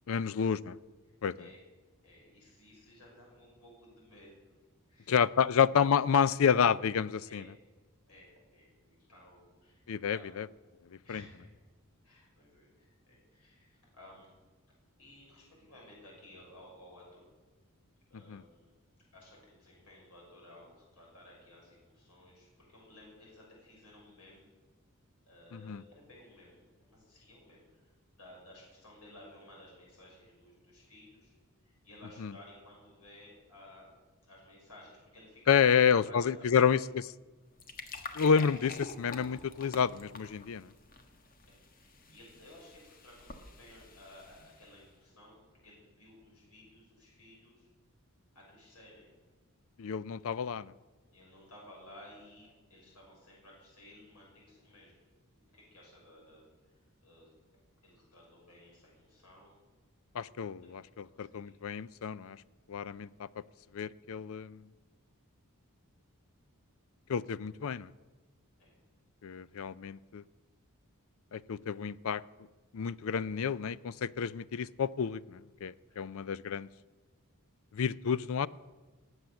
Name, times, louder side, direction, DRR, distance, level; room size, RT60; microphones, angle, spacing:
voice 1, 0.1-0.8 1.2-1.3 5.1-7.4 9.9-10.5 11.1-11.2 18.3-18.4 25.5-25.8 32.2-32.3 35.5-36.8 38.2-40.7 49.8-50.7 60.1-62.4 62.7-63.3 63.7-64.6 67.1-67.9 69.2-70.2 71.3-72.2 72.7-76.7 77.7-78.5, left 7 dB, 65° left, 19 dB, 0.4 m, -29 dB
voice 2, 2.0-4.4 4.9-5.6 7.2-7.6 8.1-10.4 11.0-11.5 12.0-14.3 15.0-17.3 18.1-18.8 19.1-24.5 25.2-31.3 31.6-33.9 34.2-36.3 36.6-36.7 41.5-47.7 48.3-49.1 51.1-55.1 55.5-56.4 56.7-57.3 57.8-59.6 60.7-61.6 68.6-68.8 75.9-76.0, left 1 dB, 80° left, -3 dB, 6.1 m, -56 dB
sound 1, 37.3-44.9, left 3 dB, 40° left, 1.3 m, -48 dB
19.5 x 7.8 x 7.1 m, 1.3 s
head